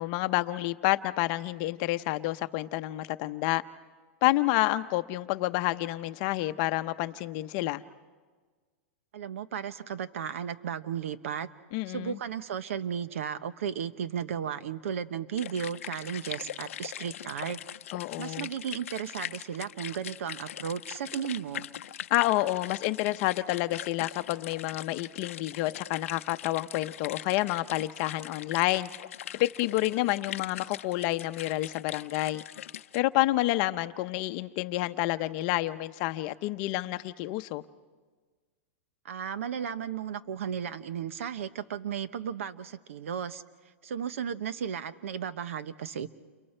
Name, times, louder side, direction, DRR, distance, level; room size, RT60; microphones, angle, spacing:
voice 1, 0.0-3.6 4.2-7.8 11.7-12.2 17.9-18.5 22.1-28.9 29.4-32.4 32.9-37.6, left 17 dB, 40° left, 0.7 m, -29 dB
voice 2, 9.1-11.5 11.9-17.6 18.2-21.7 39.0-43.4 43.8-46.1, right 8 dB, 80° right, 1.1 m, -34 dB
sound 1, 15.4-33.0, left 11 dB, 80° left, 0.6 m, -41 dB
29.5 x 29.0 x 4.4 m
supercardioid pair, 160°, 7 cm